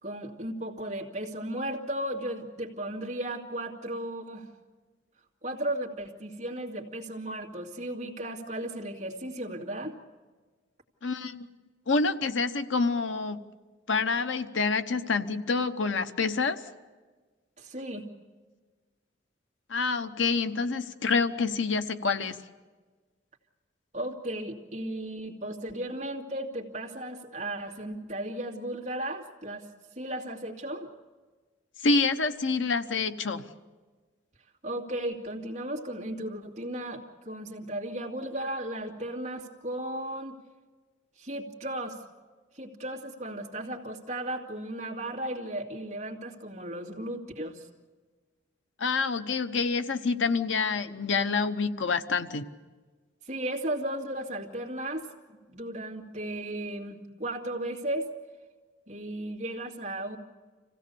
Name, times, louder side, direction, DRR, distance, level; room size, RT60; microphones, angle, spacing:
voice 1, 0.0-4.5 5.4-10.0 17.6-18.1 23.9-29.7 30.0-30.9 34.6-40.4 41.2-42.0 42.5-47.7 53.2-55.1 55.5-58.1 58.9-60.2, right 1 dB, 40° right, 0 dB, 2.4 m, -35 dB
voice 2, 11.0-11.5 11.9-13.4 13.9-16.6 19.7-22.4 31.8-33.4 48.8-52.5, left 4 dB, 90° left, 9 dB, 0.9 m, -27 dB
26.0 x 16.5 x 7.0 m, 1.4 s
head